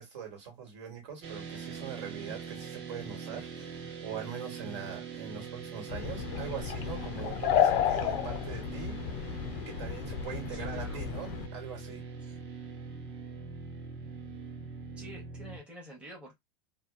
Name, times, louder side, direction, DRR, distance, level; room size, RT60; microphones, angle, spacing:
voice 1, 0.0-9.4 9.6-12.0, right 7 dB, 75° right, 1.5 m, -42 dB
sound 1, 1.2-15.6, right 5 dB, 40° right, 0.8 m, -43 dB
sound 2, 5.9-11.5, left 9 dB, 40° left, 0.4 m, -31 dB
voice 2, 10.5-11.0 12.2-12.4 15.0-16.4, equal, 5° right, 0.8 m, -48 dB
2.6 x 2.2 x 2.2 m
supercardioid pair, 160°, 15 cm